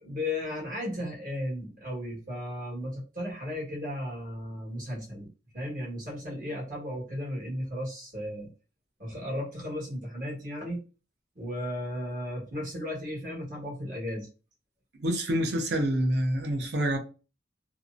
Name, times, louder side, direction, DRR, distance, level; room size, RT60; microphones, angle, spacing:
voice 1, 0.0-5.3 5.5-8.5 9.0-10.8 11.3-14.3, left 1 dB, 50° right, 1.3 m, -35 dB
voice 2, 15.0-17.0, right 1 dB, 70° right, 0.6 m, -27 dB
2.8 x 2.0 x 2.4 m
head